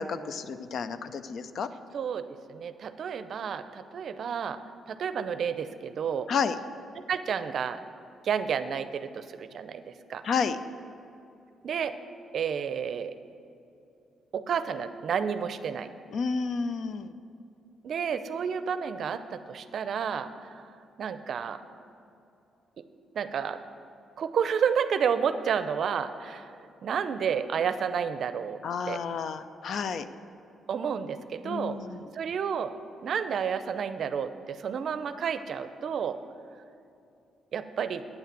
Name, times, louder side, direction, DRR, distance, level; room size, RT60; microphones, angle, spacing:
voice 1, 0.0-1.7 6.3-6.6 10.2-10.6 16.1-17.1 28.6-30.1 31.4-32.1, left 5 dB, 65° left, 12 dB, 0.4 m, -31 dB
voice 2, 1.9-2.2 2.5-4.6 4.9-6.3 7.1-7.8 8.2-9.8 10.1-10.2 11.6-11.9 12.3-13.1 14.3-15.9 17.8-20.3 21.0-21.6 23.1-23.6 24.2-26.5 26.8-28.6 28.9-29.0 30.7-31.8 32.1-32.7 33.0-36.2 37.5-38.1, right 7 dB, 60° right, 11 dB, 0.5 m, -30 dB
9.2 x 5.7 x 7.4 m, 2.6 s
cardioid pair, 80°, 0 cm